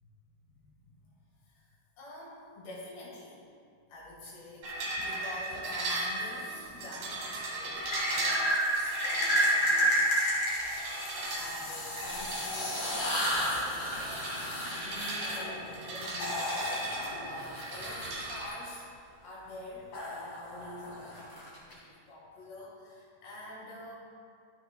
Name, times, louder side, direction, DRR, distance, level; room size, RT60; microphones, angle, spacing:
voice 1, 0.4-1.1 1.4-1.6 2.0-3.4 3.9-10.4 11.3-18.9 19.2-23.9, left 1 dB, 70° left, -5 dB, 3.7 m, -47 dB
sound 1, 4.6-18.5, right 2 dB, 65° right, 3.1 m, -37 dB
sound 2, 5.6-6.6 7.9-18.5 19.9-21.7, equal, 45° left, 2.2 m, -32 dB
12.5 x 9.0 x 2.3 m, 2.3 s
omnidirectional pair, 5.2 m